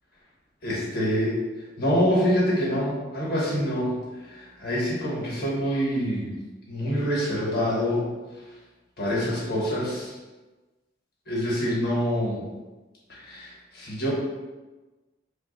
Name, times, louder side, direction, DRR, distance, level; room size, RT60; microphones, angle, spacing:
voice 1, 0.6-1.4 1.8-4.0 4.3-6.4 6.7-8.1 9.0-10.1 11.3-12.4 13.1-14.1, equal, 55° left, -5 dB, 1.1 m, -26 dB
2.9 x 2.4 x 3.9 m, 1.2 s
head